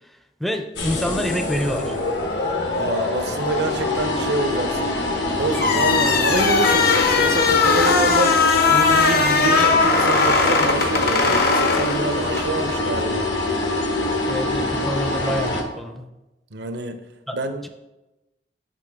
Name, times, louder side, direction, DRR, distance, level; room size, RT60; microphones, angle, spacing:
voice 1, 0.4-2.0 14.3-16.1 17.3-17.4 17.6-17.7, equal, ahead, 5 dB, 0.4 m, -26 dB
sound 1, 0.8-15.6, left 2 dB, 80° left, 1.1 m, -24 dB
voice 2, 2.8-4.9 5.3-13.3 16.5-17.0 17.3-17.6, right 2 dB, 70° right, 8 dB, 0.6 m, -26 dB
sound 2, 5.5-12.5, left 4 dB, 60° left, 0.7 m, -19 dB
6.7 x 5.6 x 3.5 m, 1.0 s
head